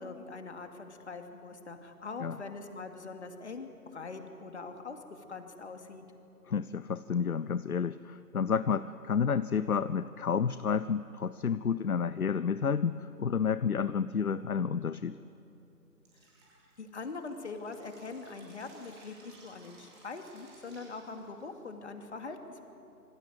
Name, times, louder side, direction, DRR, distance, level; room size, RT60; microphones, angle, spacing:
voice 1, 0.0-5.0 5.3-6.0 16.8-22.7, left 4 dB, 45° left, 6 dB, 2.6 m, -43 dB
voice 2, 6.5-15.2, left 6 dB, 65° left, 15 dB, 0.8 m, -30 dB
Drip, 16.0-21.6, right 3 dB, 15° right, 4.7 m, -58 dB
26.5 x 24.0 x 7.8 m, 2.8 s
figure-of-eight pair, 155°, 47 cm